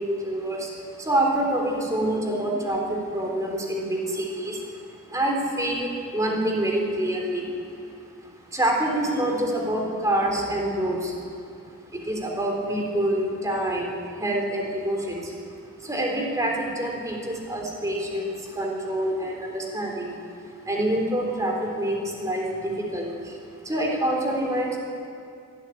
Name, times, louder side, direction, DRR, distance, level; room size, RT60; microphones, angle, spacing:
voice 1, 0.0-4.8 5.1-7.5 7.7-7.8 8.5-11.2 11.9-15.3 15.8-20.2 20.6-23.4 23.6-24.8, right 1 dB, 15° right, 0 dB, 3.8 m, -26 dB
24.5 x 13.0 x 9.9 m, 2.4 s
head